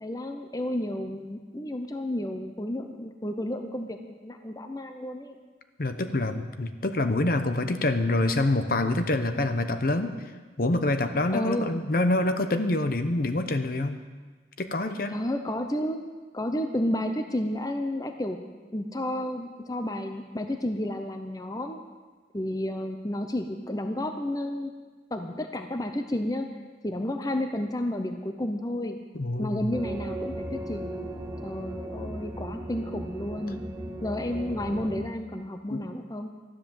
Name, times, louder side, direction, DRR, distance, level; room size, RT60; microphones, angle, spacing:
voice 1, 0.0-5.4 11.3-11.8 15.1-16.0 16.3-18.4 18.7-21.8 22.3-24.7 25.1-26.5 26.8-29.0 29.4-31.0 31.4-33.6 34.0-36.3, left 1 dB, 20° left, 6 dB, 0.7 m, -31 dB
voice 2, 5.8-10.1 10.6-14.0 14.6-15.1 29.1-29.7 35.7-35.9, left 2 dB, 50° left, 8 dB, 0.8 m, -26 dB
sound 1, 29.7-35.0, right 1 dB, 20° right, 1.7 m, -37 dB
13.0 x 10.5 x 7.1 m, 1.4 s
head